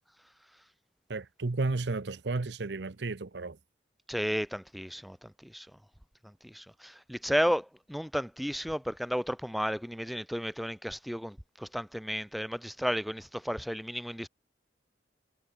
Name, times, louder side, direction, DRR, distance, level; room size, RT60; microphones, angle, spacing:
voice 1, 1.1-3.6, right 3 dB, 70° right, 0.8 m, -33 dB
voice 2, 4.1-5.7 6.2-14.3, equal, ahead, 0.7 m, -33 dB
head